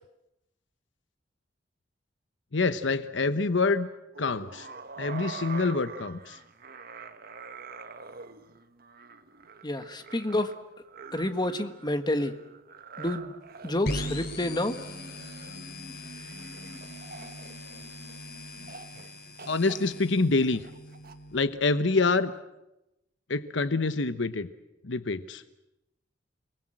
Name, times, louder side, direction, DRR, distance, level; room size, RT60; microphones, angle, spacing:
voice 1, 2.5-3.9 4.2-4.7 5.0-6.4 19.5-20.7 21.3-22.3 23.3-24.5 24.8-25.4, left 3 dB, 75° left, 12 dB, 1.0 m, -26 dB
sound 1, 4.1-18.2 18.7-19.1 19.4-21.1, right 5 dB, 55° right, 1.4 m, -46 dB
voice 2, 9.6-10.5 11.1-12.4 13.0-13.3 13.6-14.8, left 1 dB, 25° left, 9 dB, 1.5 m, -29 dB
sound 2, 13.8-21.4, left 1 dB, 55° left, 2.9 m, -40 dB
sound 3, 14.6-18.9, equal, 10° right, 5.6 m, -50 dB
30.0 x 21.0 x 7.8 m, 0.91 s
head